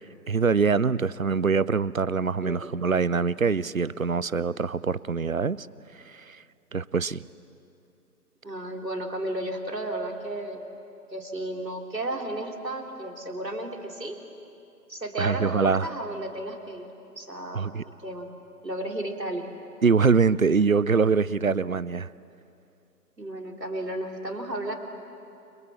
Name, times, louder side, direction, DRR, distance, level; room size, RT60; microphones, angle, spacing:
voice 1, 0.3-5.7 6.1-6.4 6.7-7.2 15.2-15.9 17.5-17.8 19.8-22.1, right 5 dB, 55° right, 20 dB, 0.6 m, -24 dB
voice 2, 2.4-2.9 8.4-10.6 11.1-14.2 14.9-16.9 17.2-18.3 18.6-19.5 23.2-24.7, right 1 dB, 75° right, 2 dB, 3.6 m, -33 dB
29.5 x 24.0 x 7.3 m, 2.7 s
figure-of-eight pair, 160°, 50 cm